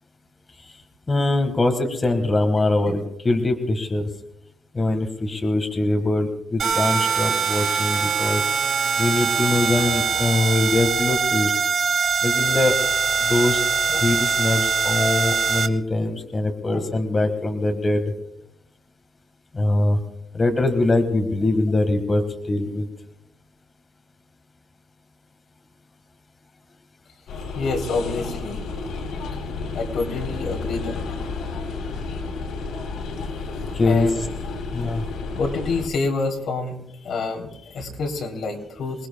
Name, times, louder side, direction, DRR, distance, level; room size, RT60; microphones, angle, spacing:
voice 1, 1.1-4.1 4.7-8.4 9.0-11.5 12.2-12.8 13.2-13.6 14.0-18.1 19.5-20.0 20.3-22.9 33.7-34.3 34.7-35.0, left 2 dB, 20° left, 5 dB, 1.7 m, -22 dB
sound 1, 6.6-15.7, right 5 dB, 45° right, 1.0 m, -22 dB
sound 2, 27.3-35.9, left 3 dB, 85° left, 3.7 m, -31 dB
voice 2, 27.5-28.6 29.7-31.0 33.9-34.2 35.3-36.7 37.0-39.1, left 3 dB, 60° left, 1 dB, 3.3 m, -27 dB
27.0 x 19.5 x 2.3 m, 0.78 s
cardioid pair, 150°, 0 cm